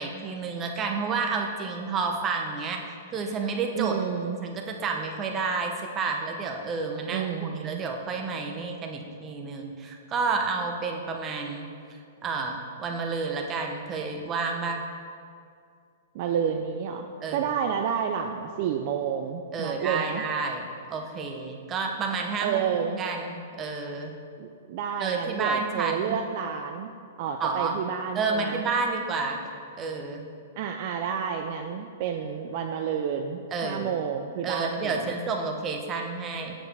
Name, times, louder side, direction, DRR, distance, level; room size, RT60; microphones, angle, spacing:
voice 1, 0.0-4.0 4.4-11.7 12.2-14.9 17.2-17.5 19.5-22.6 23.0-24.2 25.0-26.2 27.4-27.8 28.1-29.5 29.8-30.3 33.5-34.0 34.4-36.5, right 4 dB, 25° right, 3 dB, 0.8 m, -30 dB
voice 2, 3.7-4.4 7.1-7.8 16.1-17.1 17.3-20.2 22.4-23.0 24.4-26.9 27.2-28.6 30.6-35.1, right 7 dB, 50° right, 4 dB, 0.4 m, -30 dB
7.1 x 7.0 x 3.4 m, 2.3 s
hypercardioid pair, 140°, 0 cm